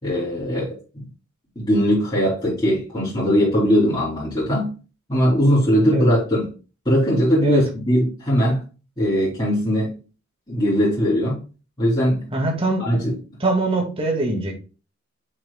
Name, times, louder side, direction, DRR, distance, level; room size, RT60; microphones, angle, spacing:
voice 1, 0.0-1.0 1.5-4.7 5.1-6.5 6.8-8.6 9.0-10.0 10.5-11.4 11.8-12.3 12.9-13.1, equal, 20° left, 3.4 m, -20 dB
voice 2, 12.3-13.1 13.4-14.5, right 2 dB, 25° right, 2.1 m, -23 dB
6.9 x 6.6 x 2.3 m
head